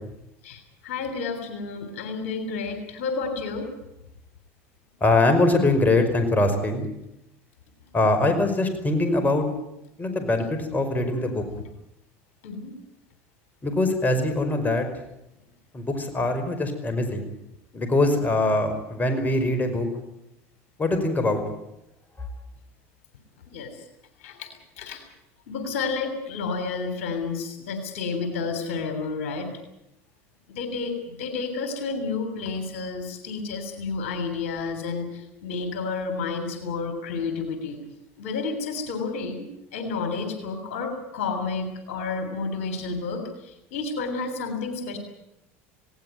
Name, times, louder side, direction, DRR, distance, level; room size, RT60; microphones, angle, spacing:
voice 1, 0.4-3.7 12.4-12.7 23.5-23.7 24.2-24.5 24.8-25.0 25.5-29.5 30.5-35.1 35.4-37.8 38.2-45.0, left 4 dB, 80° left, 8 dB, 3.3 m, -30 dB
voice 2, 5.0-6.9 7.9-9.5 10.0-11.4 13.6-14.9 15.7-17.3 17.7-19.9 20.8-21.4 22.2-22.3, left 2 dB, 25° left, 8 dB, 5.2 m, -22 dB
19.0 x 17.5 x 9.2 m, 0.86 s
hypercardioid pair, 85°, 7 cm